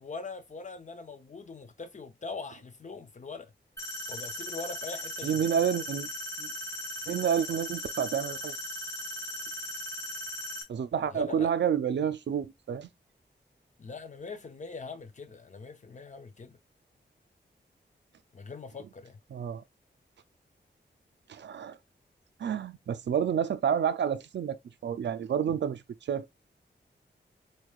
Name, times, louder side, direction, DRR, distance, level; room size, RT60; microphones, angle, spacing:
voice 1, 0.0-3.5 4.1-5.6 11.1-11.5 13.8-16.6 18.3-19.2, left 4 dB, 40° left, 0.6 m, -42 dB
sound 1, 3.8-10.6, left 1 dB, 15° left, 0.9 m, -38 dB
voice 2, 5.2-6.1 6.4-6.5 7.1-8.5 10.7-12.9 19.3-19.6 21.3-21.8 22.4-25.8 26.1-26.3, right 8 dB, 70° right, 0.4 m, -29 dB
4.2 x 3.2 x 2.3 m
wide cardioid pair, 125°, 19 cm